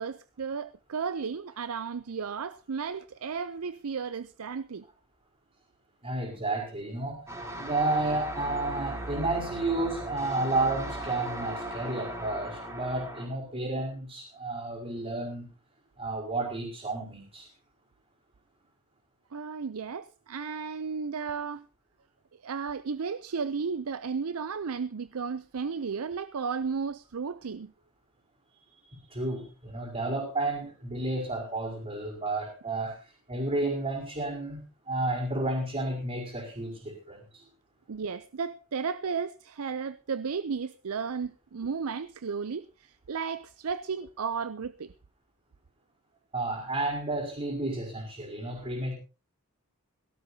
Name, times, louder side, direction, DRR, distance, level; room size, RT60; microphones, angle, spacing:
voice 1, 0.0-4.8 7.0-7.3 19.3-21.7 22.4-27.7 37.9-44.9, right 5 dB, 80° right, 0.6 m, -34 dB
voice 2, 6.0-7.2 7.5-15.5 16.0-17.5 28.8-33.0 33.3-37.4 46.3-49.0, right 2 dB, 30° right, 5.2 m, -31 dB
sound 1, 7.3-13.3, right 1 dB, 15° right, 4.7 m, -37 dB
17.5 x 16.5 x 2.8 m
head